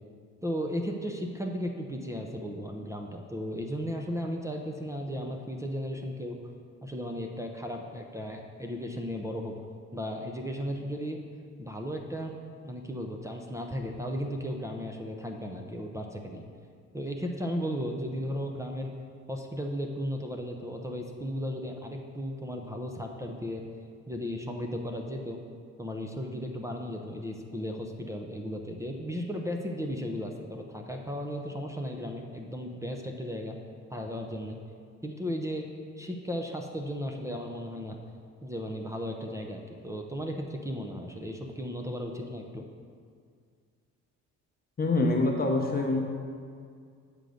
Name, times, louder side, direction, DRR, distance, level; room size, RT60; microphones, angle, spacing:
voice 1, 0.4-6.4 6.8-9.5 9.9-11.2 11.6-12.3 12.6-16.4 16.9-18.9 19.3-23.6 24.1-25.4 25.8-33.6 33.9-34.6 35.0-35.7 36.0-38.0 38.4-42.6, equal, 10° right, 1 dB, 0.6 m, -35 dB
voice 2, 44.8-46.0, left 2 dB, 30° left, 0 dB, 0.9 m, -25 dB
8.2 x 3.9 x 6.4 m, 2.1 s
cardioid pair, 90°, 30 cm